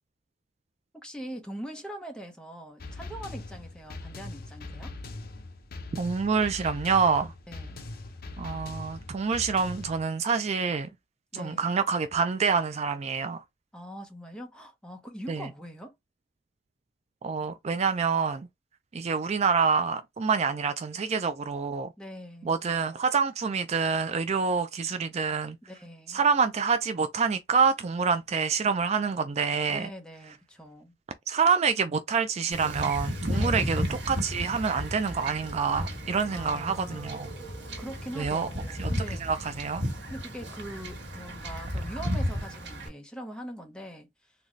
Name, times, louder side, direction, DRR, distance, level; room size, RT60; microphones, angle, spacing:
voice 1, 0.9-4.9 7.5-7.8 11.3-11.8 13.7-15.9 22.0-22.6 25.6-26.2 29.7-31.0 33.3-34.0 36.3-37.2 37.8-39.3 40.1-44.3, equal, 5° left, 0.8 m, -42 dB
sound 1, 2.8-10.0, left 2 dB, 55° left, 0.7 m, -41 dB
voice 2, 6.0-7.3 8.4-10.9 11.3-13.4 15.3-15.5 17.2-18.5 18.9-21.9 22.4-25.6 26.1-29.9 31.3-37.3 38.2-38.5 38.8-38.9 39.2-39.8, right 5 dB, 35° right, 0.3 m, -27 dB
Wind / Ocean / Boat Water vehicle, 32.5-42.9, equal, 70° right, 1.4 m, -33 dB
3.9 x 2.2 x 3.1 m
head